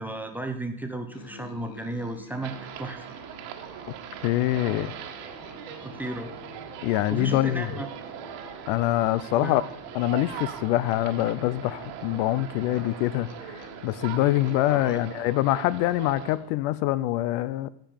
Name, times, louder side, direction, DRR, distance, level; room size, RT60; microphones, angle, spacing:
voice 1, 0.0-3.1 5.8-6.3 7.1-7.9 9.3-9.6 14.7-15.0, right 2 dB, 5° right, 0.7 m, -34 dB
Musical instrument, 1.1-16.7, left 2 dB, 35° left, 1.1 m, -49 dB
sound 1, 2.4-16.4, right 9 dB, 65° right, 1.5 m, -40 dB
voice 2, 4.2-4.9 6.8-7.7 8.7-9.6 9.9-17.7, left 15 dB, 70° left, 0.6 m, -25 dB
15.0 x 5.2 x 5.1 m
cardioid pair, 145°, 44 cm